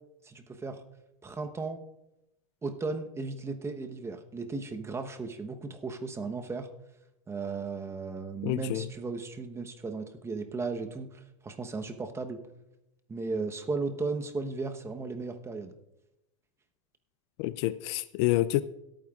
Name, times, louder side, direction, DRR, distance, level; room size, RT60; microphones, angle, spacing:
voice 1, 0.2-0.8 1.2-1.8 2.6-6.7 7.3-12.4 13.1-15.7, right 4 dB, 15° right, 7 dB, 1.0 m, -35 dB
voice 2, 8.4-8.9 17.4-18.6, left 16 dB, 60° left, 17 dB, 0.4 m, -28 dB
22.0 x 8.9 x 2.4 m, 0.88 s
supercardioid pair, 115°, 17 cm